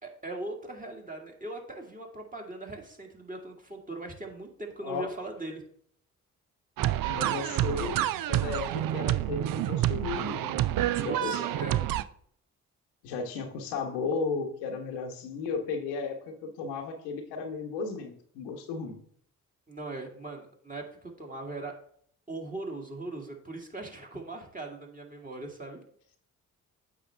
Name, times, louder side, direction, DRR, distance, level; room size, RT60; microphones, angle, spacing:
voice 1, 0.0-5.6 11.0-11.8 19.7-21.7 22.3-25.8, right 2 dB, 20° right, 1 dB, 2.1 m, -40 dB
sound 1, 6.8-12.0, right 13 dB, 55° right, 0.5 m, -28 dB
voice 2, 7.1-8.0 8.3-11.4 13.0-19.0, left 4 dB, 80° left, 3 dB, 1.2 m, -34 dB
8.7 x 5.6 x 3.4 m, 0.63 s
hypercardioid pair, 40°, 42 cm